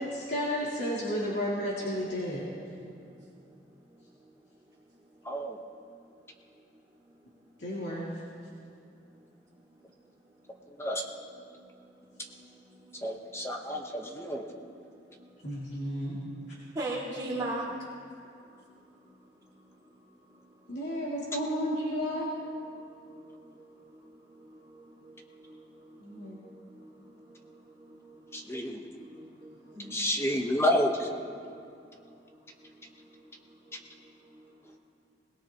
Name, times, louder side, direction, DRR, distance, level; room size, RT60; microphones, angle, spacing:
voice 1, 0.0-2.4 7.6-8.0 15.4-16.2 20.7-22.3 26.0-26.4, equal, 90° left, -7 dB, 2.7 m, -32 dB
voice 2, 2.8-5.0 5.9-6.2 6.5-6.6 7.1-7.5 8.5-8.7 9.1-9.3 9.7-9.9 10.5-10.9 11.5-13.8 14.6-15.6 16.6-17.9 18.4-20.7 22.7-30.0 31.4-34.8, right 2 dB, 20° right, -10 dB, 2.4 m, -45 dB
voice 3, 5.2-5.6 10.7-11.0 12.9-14.5 28.3-28.8 29.9-31.1, left 1 dB, 15° left, 3 dB, 1.1 m, -30 dB
21.5 x 18.5 x 3.0 m, 2.5 s
head